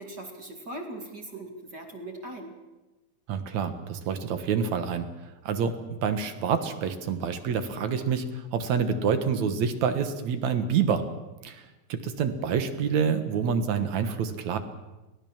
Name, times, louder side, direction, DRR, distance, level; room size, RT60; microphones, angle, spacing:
voice 1, 0.0-2.6, right 1 dB, 30° right, 2 dB, 2.6 m, -40 dB
voice 2, 3.3-5.1 5.4-11.0 11.4-11.6 11.9-14.6, right 6 dB, 60° right, 9 dB, 2.5 m, -27 dB
23.0 x 17.5 x 7.3 m, 1.1 s
omnidirectional pair, 4.1 m